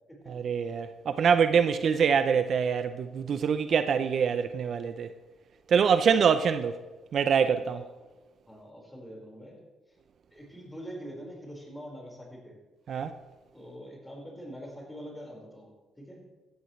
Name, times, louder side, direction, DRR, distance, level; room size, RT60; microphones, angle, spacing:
voice 1, 0.3-5.1 5.7-6.8 7.1-7.8 12.9-13.1, right 6 dB, 60° right, 0.6 m, -25 dB
voice 2, 8.5-9.6 10.3-12.6 13.5-15.7 16.0-16.3, equal, 10° left, 4.7 m, -44 dB
16.5 x 13.0 x 3.2 m
cardioid pair, 90°, 0 cm